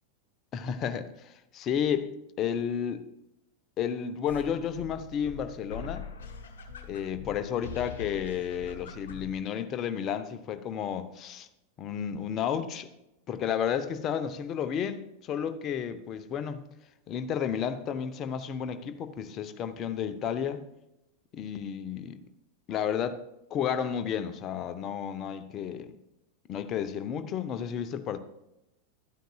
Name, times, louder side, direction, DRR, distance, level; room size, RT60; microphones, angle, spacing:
voice 1, 0.5-3.0 3.8-6.1 6.9-11.5 11.8-12.9 13.3-16.6 17.1-20.6 21.3-22.2 22.7-23.2 23.5-25.9 26.5-28.2, left 8 dB, 30° left, 10 dB, 0.7 m, -32 dB
sound 1, 4.2-9.4, left 5 dB, 60° left, 0.9 m, -43 dB
11.5 x 9.1 x 2.3 m, 0.89 s
figure-of-eight pair, 90°, 0 cm